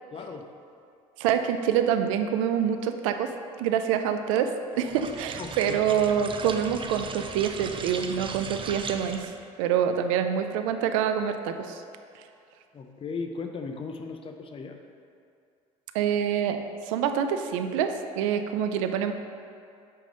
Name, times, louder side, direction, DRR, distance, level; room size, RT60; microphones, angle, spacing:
voice 1, 0.1-0.5 5.4-5.8 12.7-14.8, left 4 dB, 35° left, 5 dB, 0.7 m, -37 dB
voice 2, 1.2-3.3 3.6-9.3 9.6-11.8 15.9-16.6 16.9-19.1, right 8 dB, 80° right, 7 dB, 0.5 m, -26 dB
sound 1, 4.8-9.4, right 4 dB, 30° right, 0.6 m, -38 dB
8.8 x 3.3 x 5.3 m, 2.5 s
hypercardioid pair, 65°, 17 cm